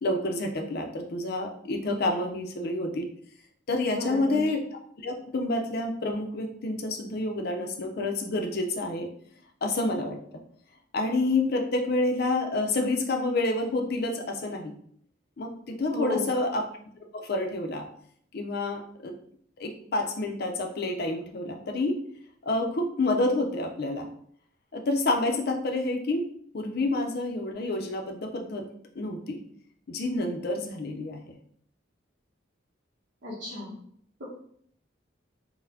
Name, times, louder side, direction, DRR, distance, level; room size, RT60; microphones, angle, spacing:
voice 1, 0.0-3.1 3.7-4.6 5.0-9.1 9.6-10.2 10.9-14.7 15.4-16.6 17.1-17.8 18.3-19.1 19.6-22.0 22.4-24.1 24.7-26.3 26.5-28.7 28.9-29.4 29.9-31.4, left 2 dB, 55° left, 3 dB, 0.5 m, -28 dB
voice 2, 3.8-4.5 15.9-16.3 33.2-33.8 34.2-34.3, left 2 dB, 70° right, -7 dB, 0.9 m, -34 dB
4.0 x 2.1 x 2.7 m, 0.64 s
head